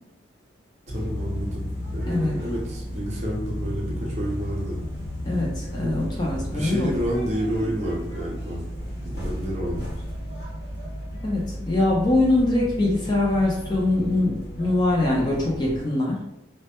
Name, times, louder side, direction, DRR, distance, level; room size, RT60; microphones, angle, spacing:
sound 1, 0.9-15.8, equal, 60° left, 0.9 m, -33 dB
voice 1, 0.9-4.8 5.8-6.0 6.5-8.7 9.0-9.9, equal, 35° right, -3 dB, 0.5 m, -30 dB
voice 2, 2.1-2.4 5.2-6.9 7.6-7.7 11.2-16.2, left 2 dB, 25° left, -4 dB, 0.4 m, -23 dB
2.1 x 2.0 x 2.8 m, 0.86 s
head